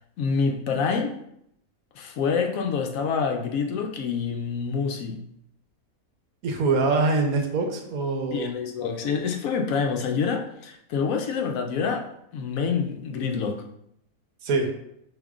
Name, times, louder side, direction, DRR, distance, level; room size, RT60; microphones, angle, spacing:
voice 1, 0.2-1.1 2.0-5.2 8.3-12.1 12.3-13.6, left 5 dB, 75° left, 3 dB, 1.0 m, -27 dB
voice 2, 6.4-8.5 14.4-14.7, right 3 dB, 85° right, 2 dB, 1.2 m, -24 dB
5.3 x 3.1 x 2.4 m, 0.74 s
omnidirectional pair, 1.5 m